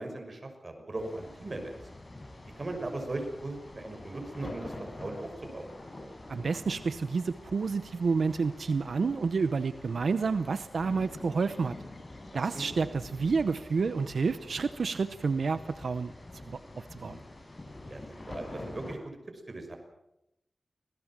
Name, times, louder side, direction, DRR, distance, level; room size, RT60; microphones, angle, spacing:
voice 1, 0.0-1.8 2.6-5.7 12.5-12.6 17.9-19.2 19.5-19.8, right 2 dB, 45° right, 4 dB, 5.9 m, -38 dB
sound 1, 1.0-18.9, left 2 dB, 35° left, 7.1 m, -46 dB
voice 2, 6.3-11.8 12.3-16.1 16.5-17.2, right 4 dB, 85° right, 12 dB, 0.8 m, -29 dB
26.0 x 18.5 x 7.5 m, 0.86 s
wide cardioid pair, 85°, 0 cm